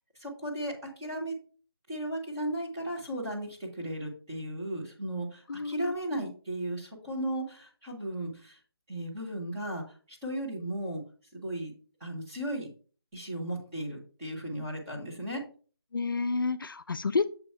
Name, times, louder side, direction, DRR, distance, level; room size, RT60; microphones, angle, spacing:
voice 1, 0.2-1.3 1.9-8.6 8.9-11.0 11.3-11.7 12.0-12.7 13.1-15.4, right 1 dB, 10° right, -5 dB, 1.2 m, -35 dB
voice 2, 5.5-5.9 15.9-17.4, left 4 dB, 55° left, 11 dB, 0.4 m, -30 dB
6.9 x 3.0 x 5.5 m, 0.40 s
figure-of-eight pair, 170°, 13 cm